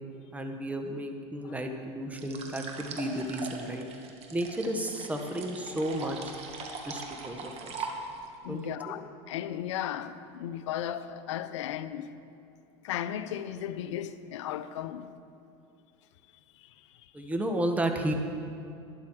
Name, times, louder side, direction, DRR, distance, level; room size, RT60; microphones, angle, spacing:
voice 1, 0.3-3.8 4.3-6.2 6.8-7.9 8.5-9.0 17.1-18.1, right 1 dB, 10° right, 1.2 m, -33 dB
sound 1, 2.1-8.3, right 4 dB, 40° right, 1.6 m, -41 dB
voice 2, 8.4-9.0 9.3-12.1 12.8-15.1 16.6-16.7, left 10 dB, 85° left, 0.6 m, -36 dB
12.0 x 10.5 x 4.7 m
supercardioid pair, 105°, 15 cm